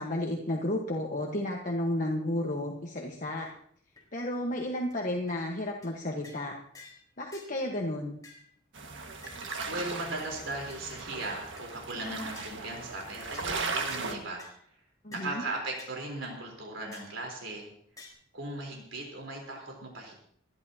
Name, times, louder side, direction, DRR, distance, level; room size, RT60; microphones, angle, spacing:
voice 1, 0.0-3.5 4.1-6.5 7.2-8.2 15.0-15.4, left 1 dB, 45° left, 0 dB, 1.3 m, -32 dB
sound 1, 3.1-3.2 3.4-3.5 4.0-4.1 4.5-4.6 4.9-5.0 5.3-5.4 5.8-5.9 6.2-6.5 6.7-7.0 7.3-7.5 8.2-8.5 9.2-9.4 10.2-10.3 10.7-10.8 11.3-11.6 12.3-12.6 13.3-13.5 13.9-14.0 14.4-14.6 15.1-15.3 15.8-15.9 16.2-16.3 16.9-17.2 18.0-18.1, left 3 dB, 20° left, 4.1 m, -51 dB
sound 2, 8.7-14.1, right 4 dB, 70° right, 1.7 m, -37 dB
voice 2, 9.7-14.5 15.1-17.7 18.3-20.1, right 2 dB, 85° right, 0 dB, 3.8 m, -38 dB
27.5 x 11.0 x 2.8 m, 0.65 s
head